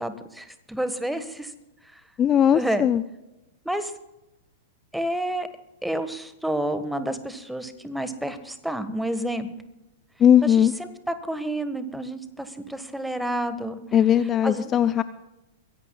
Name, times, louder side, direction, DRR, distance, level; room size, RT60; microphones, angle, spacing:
voice 1, 0.0-1.5 2.5-2.8 3.6-3.9 4.9-5.5 5.8-9.5 10.4-13.8 14.4-14.7, right 1 dB, ahead, 10 dB, 1.5 m, -29 dB
voice 2, 2.2-3.0 10.2-10.7 13.9-15.0, left 9 dB, 25° left, 14 dB, 0.5 m, -18 dB
23.5 x 16.5 x 2.4 m, 0.94 s
figure-of-eight pair, 100°, 0 cm